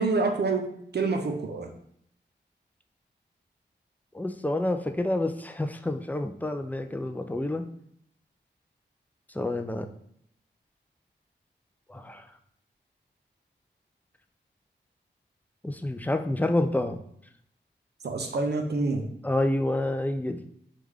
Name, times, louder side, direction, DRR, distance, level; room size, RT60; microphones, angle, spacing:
voice 1, 0.0-1.7 18.0-19.1, right 3 dB, 60° right, 5 dB, 0.6 m, -27 dB
voice 2, 4.1-7.6 9.3-9.9 11.9-12.3 15.6-17.0 19.2-20.5, left 1 dB, 10° left, 7 dB, 0.4 m, -28 dB
3.1 x 2.4 x 3.5 m, 0.69 s
cardioid pair, 40°, 19 cm